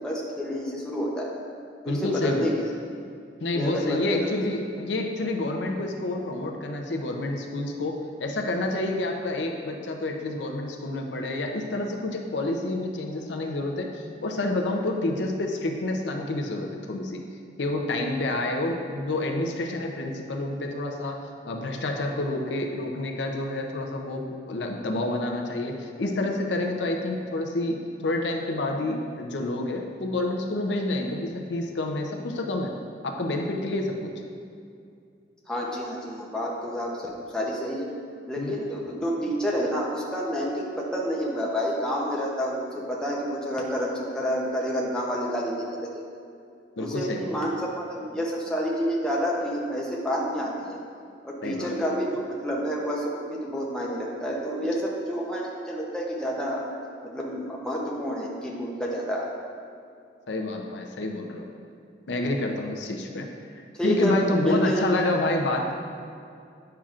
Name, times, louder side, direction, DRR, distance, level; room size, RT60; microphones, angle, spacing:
voice 1, 0.0-1.3 1.8-2.5 3.5-4.3 35.5-37.9 38.3-42.6 42.9-46.0 46.8-50.8 51.2-56.6 57.0-59.3 63.8-65.0, equal, 5° left, -4 dB, 0.7 m, -29 dB
voice 2, 1.9-2.5 3.4-17.2 17.6-32.7 33.0-34.1 38.4-38.5 46.8-47.3 51.4-51.9 60.3-61.5 62.1-63.3 63.8-65.7, left 2 dB, 75° left, 2 dB, 0.6 m, -28 dB
8.7 x 5.7 x 2.4 m, 2.4 s
head